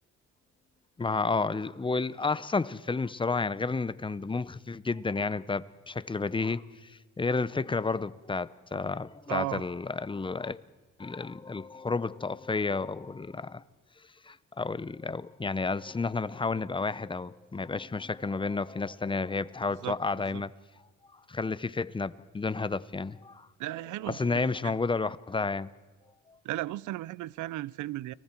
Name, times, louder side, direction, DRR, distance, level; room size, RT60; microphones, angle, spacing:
voice 1, 1.0-10.6 11.0-13.6 14.3-20.5 21.3-23.5 24.1-25.7, left 4 dB, 15° left, 0.7 m, -31 dB
voice 2, 9.3-9.6 19.8-20.4 23.6-24.7 25.0-25.1 26.4-28.1, right 16 dB, 75° right, 0.6 m, -36 dB
29.5 x 19.5 x 4.5 m
cardioid pair, 90°, 30 cm